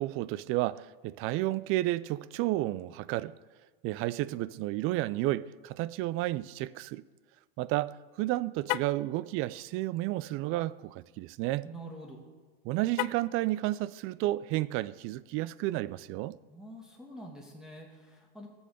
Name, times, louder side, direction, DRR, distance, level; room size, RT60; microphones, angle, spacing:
voice 1, 0.0-3.3 3.8-7.0 7.6-11.7 12.6-16.4, right 16 dB, 45° right, 0.5 m, -31 dB
Car, 8.6-9.1 12.9-13.4, left 19 dB, 50° left, 0.5 m, -34 dB
voice 2, 11.6-12.2 16.5-18.5, right 1 dB, ahead, 2.3 m, -46 dB
21.0 x 7.2 x 5.1 m
hypercardioid pair, 105°, 30 cm